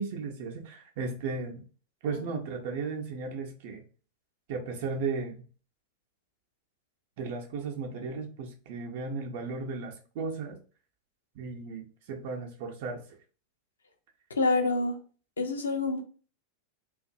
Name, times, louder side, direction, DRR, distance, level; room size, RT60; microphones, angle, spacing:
voice 1, 0.0-1.7 2.0-3.8 4.5-5.5 7.2-10.6 11.4-13.0, right 4 dB, 50° right, 2 dB, 0.4 m, -35 dB
voice 2, 14.3-15.0 15.4-16.0, left 3 dB, 70° left, 5 dB, 0.5 m, -27 dB
2.5 x 2.2 x 2.6 m, 0.38 s
figure-of-eight pair, 90°, 0 cm